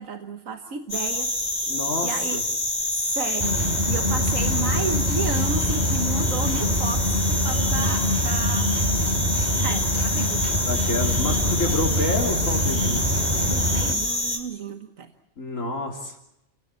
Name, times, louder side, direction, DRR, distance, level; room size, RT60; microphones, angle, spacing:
voice 1, 0.0-1.3 2.0-2.4 2.9-8.7 9.6-10.5 13.5-15.1, right 5 dB, 90° right, 5 dB, 1.7 m, -33 dB
sound 1, 0.9-14.4, left 1 dB, 40° left, 5.2 m, -27 dB
voice 2, 1.7-2.4 10.7-13.1 15.4-16.2, left 2 dB, 80° left, 0 dB, 3.5 m, -28 dB
sound 2, 3.4-13.9, equal, 30° right, 4.3 m, -25 dB
30.0 x 17.5 x 8.2 m, 0.86 s
omnidirectional pair, 1.3 m